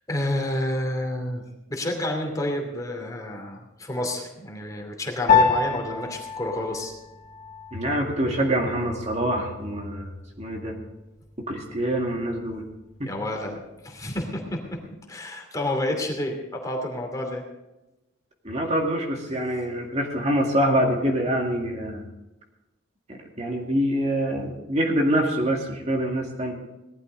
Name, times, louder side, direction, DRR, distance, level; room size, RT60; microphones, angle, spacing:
voice 1, 0.1-1.4 1.7-6.9 13.1-14.8 15.1-17.4, left 1 dB, 20° left, 0 dB, 2.7 m, -29 dB
Piano, 5.3-14.9, left 6 dB, 45° left, 3.0 m, -29 dB
voice 2, 7.7-10.8 11.5-12.6 13.0-13.1 18.4-22.1 23.1-26.5, equal, 35° right, 0 dB, 2.1 m, -25 dB
18.5 x 12.5 x 3.9 m, 1.0 s
head